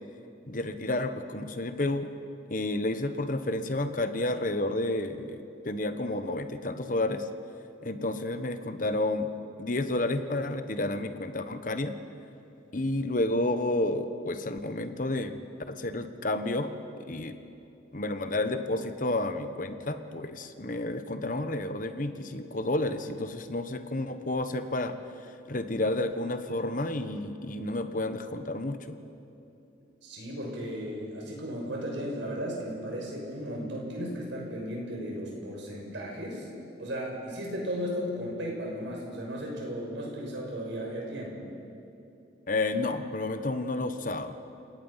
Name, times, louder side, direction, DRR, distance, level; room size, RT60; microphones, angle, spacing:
voice 1, 0.5-2.1 2.5-7.3 7.8-9.3 9.6-12.0 12.7-16.7 17.0-17.4 17.9-29.0 42.5-44.4, left 2 dB, 45° left, 9 dB, 1.2 m, -31 dB
voice 2, 30.0-36.5 36.8-41.3, equal, 70° right, -2 dB, 6.2 m, -35 dB
30.0 x 18.5 x 5.7 m, 2.8 s
head